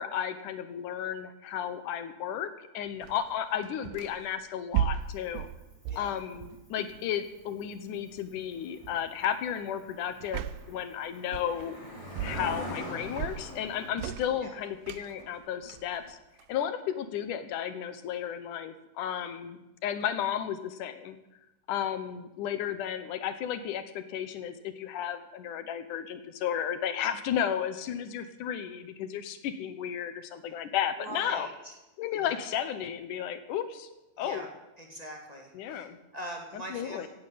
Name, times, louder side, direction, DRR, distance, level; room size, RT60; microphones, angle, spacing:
voice 1, 0.0-5.5 5.9-11.8 12.2-16.2 16.5-21.2 21.7-31.5 32.0-33.9 34.2-34.5 35.5-36.0 36.7-37.1, left 9 dB, 70° left, 11 dB, 2.4 m, -33 dB
sound 1, 3.0-4.3 4.7-7.1 8.2-8.4 8.8-9.1 10.2-10.8 11.3-11.9 12.2-12.7 13.0-16.6, right 10 dB, 90° right, 2.5 m, -36 dB
Cricket, 5.0-13.9, equal, 10° left, 3.5 m, -44 dB
voice 2, 31.0-31.7 32.2-32.4 34.2-34.5 34.8-37.1, right 1 dB, 15° right, 1 dB, 2.0 m, -42 dB
16.5 x 9.5 x 8.6 m, 0.96 s
omnidirectional pair, 4.2 m